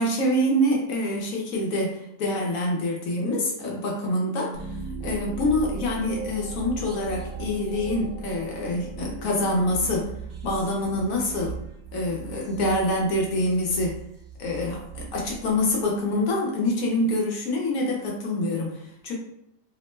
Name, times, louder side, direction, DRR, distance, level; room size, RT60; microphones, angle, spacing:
voice 1, 0.0-10.1 10.4-11.6 11.9-14.0 14.4-19.1, left 1 dB, 65° left, -2 dB, 0.9 m, -26 dB
sound 1, 4.5-16.1, right 5 dB, 75° right, 1.2 m, -38 dB
2.9 x 2.0 x 3.1 m, 0.78 s
omnidirectional pair, 1.8 m